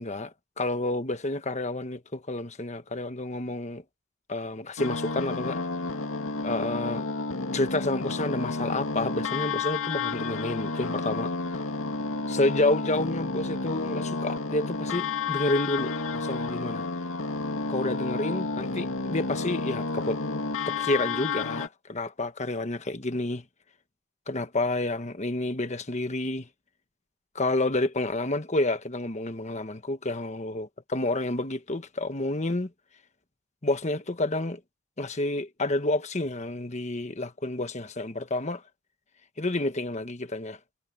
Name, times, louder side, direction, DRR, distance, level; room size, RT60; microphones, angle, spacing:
voice 1, 0.0-3.8 4.3-5.6 6.4-7.1 7.5-11.6 12.3-16.9 17.7-20.2 20.7-23.4 24.3-26.5 27.3-32.7 33.6-34.6 35.0-38.6 39.4-40.6, left 2 dB, 35° left, 1.3 m, -29 dB
sound 1, 4.8-21.7, left 3 dB, 85° left, 2.2 m, -31 dB
head